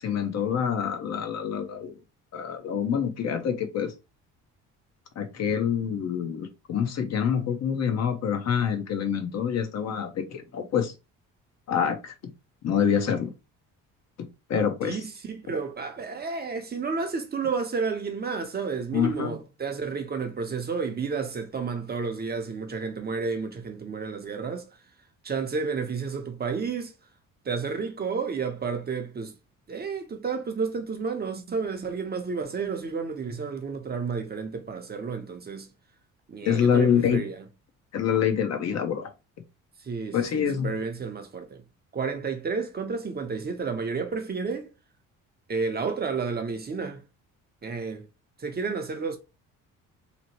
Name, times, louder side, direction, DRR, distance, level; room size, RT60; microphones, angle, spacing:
voice 1, 0.0-2.0 2.3-3.9 5.2-10.9 11.7-12.1 12.6-13.3 14.2-15.0 18.9-19.4 36.4-37.2 37.9-39.1 40.1-40.7, left 7 dB, 50° left, 0.7 m, -26 dB
voice 2, 14.8-24.7 25.2-26.9 27.4-29.3 29.7-35.7 36.3-37.4 39.8-41.6 41.9-44.7 45.5-47.0 47.6-48.1 48.4-49.2, right 5 dB, 30° right, 0.6 m, -31 dB
2.9 x 2.0 x 2.9 m
supercardioid pair, 75°, 34 cm